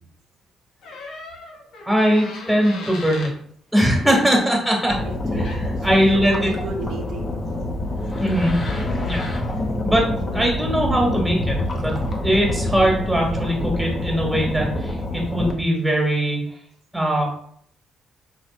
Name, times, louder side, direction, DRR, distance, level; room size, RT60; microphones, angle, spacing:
Door, 0.8-3.4 5.2-5.3 5.4-5.8, left 3 dB, 85° left, 0.7 m, -37 dB
voice 1, 1.8-3.3 3.7-5.0 5.3-6.5 8.2-8.5 9.0-9.3 9.8-10.1 10.3-16.6 16.9-17.3, equal, ahead, -1 dB, 1.4 m, -21 dB
voice 2, 4.2-4.6 4.9-7.4 10.3-10.4, right 3 dB, 75° right, 1 dB, 0.6 m, -33 dB
sound 1, 4.9-15.5, left 1 dB, 35° left, 0.7 m, -26 dB
4.3 x 2.7 x 2.5 m, 0.64 s
cardioid pair, 90°, 0 cm